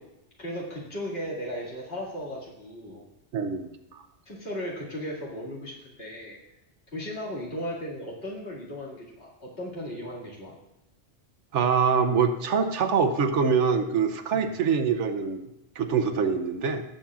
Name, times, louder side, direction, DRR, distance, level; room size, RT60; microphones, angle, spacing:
voice 1, 0.4-3.0 4.3-6.4 6.9-10.6 14.3-14.5, equal, 60° left, -5 dB, 2.6 m, -36 dB
voice 2, 3.3-4.0 11.5-15.5 15.8-16.8, right 6 dB, 90° right, 8 dB, 1.1 m, -24 dB
17.0 x 7.2 x 2.4 m, 0.89 s
omnidirectional pair, 1.2 m